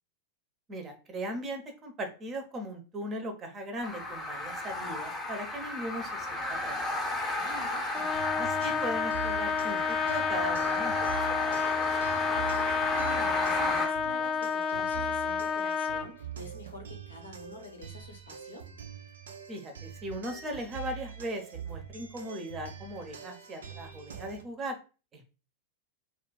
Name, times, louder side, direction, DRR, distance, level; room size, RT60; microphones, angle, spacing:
voice 1, 0.7-7.0 8.4-11.2 11.5-12.2 19.5-24.8 25.1-25.2, right 1 dB, 25° right, 4 dB, 0.7 m, -38 dB
sound 1, 3.8-13.9, left 2 dB, 15° left, 0.8 m, -33 dB
voice 2, 7.3-8.2 12.7-18.6, equal, 70° left, 4 dB, 0.8 m, -47 dB
Trumpet, 7.9-16.1, left 6 dB, 30° left, 0.3 m, -30 dB
sound 2, 8.0-24.4, right 8 dB, 65° right, 0.5 m, -44 dB
2.4 x 2.1 x 3.8 m, 0.34 s
figure-of-eight pair, 90°, 0 cm